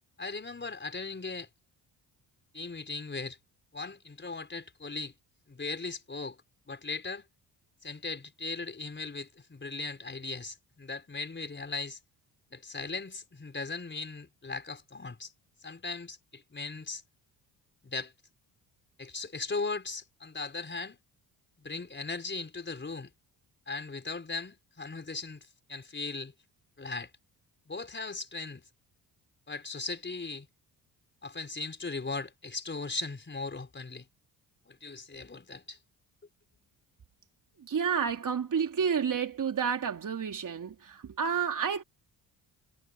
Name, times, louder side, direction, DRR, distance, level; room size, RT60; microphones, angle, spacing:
voice 1, 0.2-1.5 2.5-3.4 3.7-5.1 5.5-6.4 6.7-7.3 7.8-12.0 12.5-15.3 15.6-17.0 17.8-18.1 19.0-21.0 21.6-23.1 23.7-26.3 26.8-27.1 27.7-28.6 29.5-30.5 31.2-34.1 34.7-35.8, left 3 dB, 25° left, 4.7 m, -38 dB
voice 2, 37.7-41.8, right 7 dB, 50° right, 3.4 m, -30 dB
cardioid pair, 75°, 41 cm